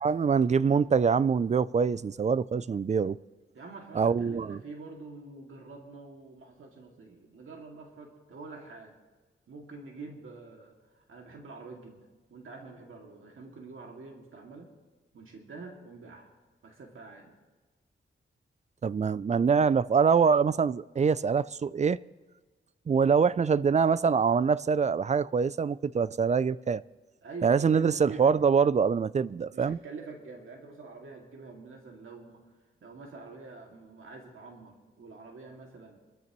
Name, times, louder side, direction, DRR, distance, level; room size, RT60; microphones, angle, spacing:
voice 1, 0.0-3.2 4.0-4.6 18.8-22.0 22.9-26.8 27.4-29.8, right 6 dB, 35° right, 0.4 m, -24 dB
voice 2, 3.5-9.0 9.5-14.7 15.1-16.3 16.6-17.3 27.2-28.3 29.5-32.5 32.8-36.0, right 3 dB, 75° right, 2.3 m, -46 dB
27.0 x 13.5 x 3.1 m
wide cardioid pair, 105°, 21 cm